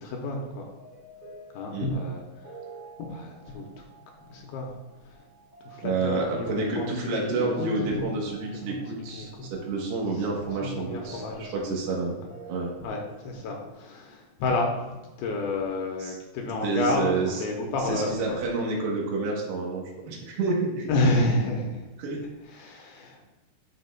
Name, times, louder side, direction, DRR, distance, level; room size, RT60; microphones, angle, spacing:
voice 1, 0.0-0.7 1.5-2.5 3.1-3.8 4.2-4.8 5.0-5.2 5.6-8.1 8.7-9.5 10.6-11.7 12.8-18.4 20.9-21.9 22.5-23.3, left 2 dB, 75° left, 1 dB, 2.5 m, -30 dB
sound 1, 0.8-13.7, right 2 dB, 40° right, 3.1 m, -48 dB
voice 2, 5.8-12.7 16.0-16.1 16.6-17.4 17.8-20.9 22.0-22.2, right 3 dB, 75° right, -1 dB, 3.4 m, -29 dB
11.0 x 5.9 x 2.4 m, 1.1 s
omnidirectional pair, 5.0 m